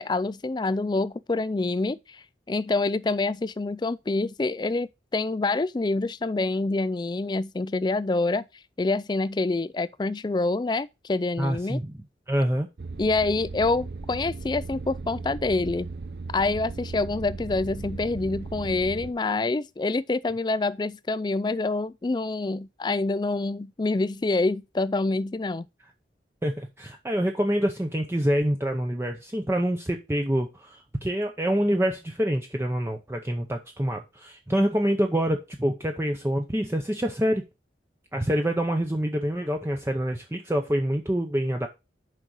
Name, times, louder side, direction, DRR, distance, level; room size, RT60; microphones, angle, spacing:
voice 1, 0.0-8.4 8.8-11.8 13.0-15.9 16.3-25.7, left 3 dB, 25° left, 0.3 m, -26 dB
voice 2, 11.4-12.0 12.3-12.7 26.4-37.4 38.1-41.7, equal, 15° right, 0.6 m, -26 dB
sound 1, 12.8-19.1, right 3 dB, 60° right, 0.5 m, -37 dB
6.4 x 5.1 x 6.1 m
head